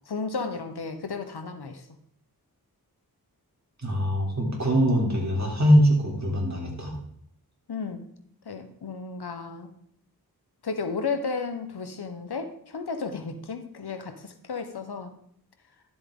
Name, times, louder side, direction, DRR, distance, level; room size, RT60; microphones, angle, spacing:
voice 1, 0.1-1.9 7.7-8.1 8.4-9.7 10.6-15.1, left 4 dB, 80° left, 8 dB, 1.1 m, -33 dB
voice 2, 3.8-7.0, equal, 45° right, -2 dB, 3.6 m, -22 dB
12.0 x 7.6 x 3.8 m, 0.68 s
wide cardioid pair, 70°, 38 cm